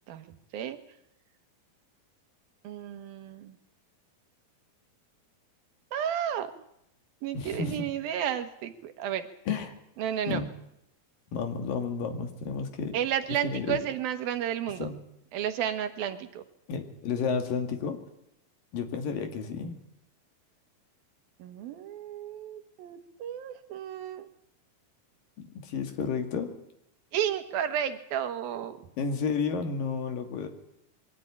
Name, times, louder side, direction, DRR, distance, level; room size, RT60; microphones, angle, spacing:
voice 1, 2.6-3.6 5.9-6.5 7.2-9.3 10.0-10.4 12.9-14.9 15.3-16.4 21.4-24.3 27.1-28.9, right 10 dB, 75° right, 8 dB, 3.1 m, -32 dB
voice 2, 7.3-7.9 9.5-9.8 10.3-10.5 11.3-13.0 13.4-13.8 14.8-15.0 16.7-18.0 18.7-19.8 25.6-26.5 29.0-30.5, left 5 dB, 65° left, 6 dB, 3.7 m, -31 dB
22.5 x 15.0 x 9.8 m, 0.77 s
omnidirectional pair, 4.3 m